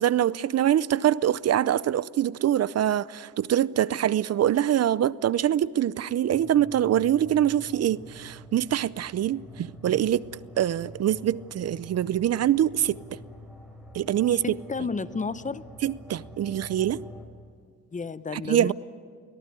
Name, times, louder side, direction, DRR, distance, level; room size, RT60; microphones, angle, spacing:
voice 1, 0.0-10.2 10.6-13.0 13.9-14.6 15.8-17.0 18.3-18.7, right 11 dB, 55° right, 0.7 m, -24 dB
sound 1, 6.3-17.3, equal, ahead, 6.5 m, -46 dB
voice 2, 14.3-15.7 17.9-18.7, left 4 dB, 25° left, 1.0 m, -32 dB
25.0 x 18.5 x 9.7 m
cardioid pair, 90°, 30 cm